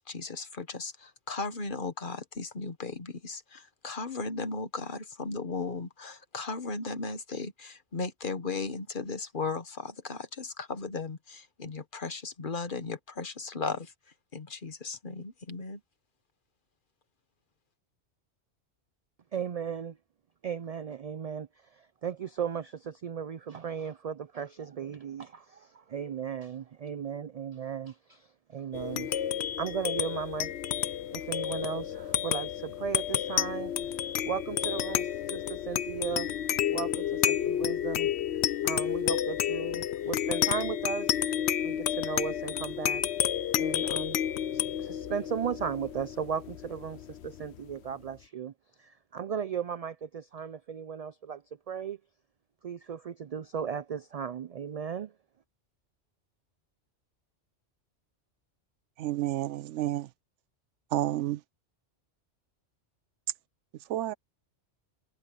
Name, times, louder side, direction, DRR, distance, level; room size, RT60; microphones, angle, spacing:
voice 1, 0.0-13.9 14.3-15.8, left 4 dB, 50° left, 1.4 m, -36 dB
voice 2, 19.3-20.0 20.4-29.2 29.6-30.5 31.1-33.7 34.3-36.3 36.7-38.1 38.6-41.1 41.6-43.0 43.6-44.2 44.5-48.5 48.8-52.0 52.6-55.1, right 7 dB, 60° right, 0.4 m, -36 dB
sound 1, 28.7-47.6, left 10 dB, 70° left, 0.9 m, -31 dB
voice 3, 59.0-60.1 60.9-61.4 63.9-64.1, right 14 dB, 85° right, 0.9 m, -30 dB
omnidirectional pair, 1.2 m